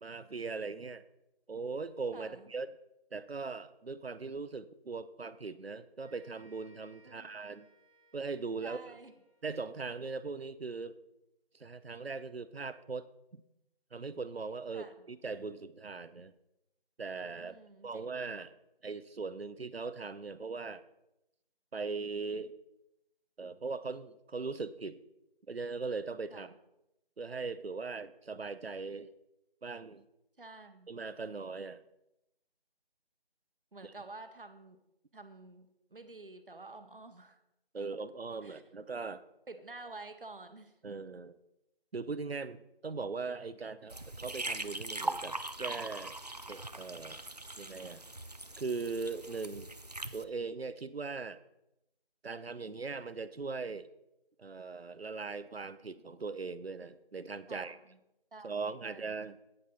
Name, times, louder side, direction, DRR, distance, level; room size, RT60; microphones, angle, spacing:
voice 1, 0.0-1.0 1.5-2.7 3.1-7.7 8.1-8.9 9.4-10.9 11.5-13.1 13.3-13.4 13.9-16.3 17.0-17.6 17.8-18.5 18.8-20.8 21.7-22.5 23.4-25.0 25.5-26.5 27.2-29.1 29.6-30.0 30.9-31.8 33.8-33.9 37.7-39.2 40.8-41.4 41.9-46.2 46.5-47.2 47.6-48.0 48.6-49.7 50.1-51.4 52.2-53.9 54.4-57.8 58.4-59.4, right 4 dB, 80° right, 14 dB, 0.7 m, -40 dB
voice 2, 2.1-2.5 7.1-7.5 8.6-9.1 14.7-14.9 17.4-18.0 26.3-26.5 30.4-31.0 33.7-34.8 35.1-37.4 38.4-38.6 39.5-40.7 57.5-58.0 58.3-59.1, right 3 dB, 60° right, 8 dB, 1.2 m, -50 dB
sound 1, 6.0-9.7, right 1 dB, 5° left, 1.2 m, -66 dB
sound 2, 43.9-50.2, right 2 dB, 45° right, 0.4 m, -41 dB
9.5 x 8.8 x 4.1 m, 0.88 s
figure-of-eight pair, 165°, 30 cm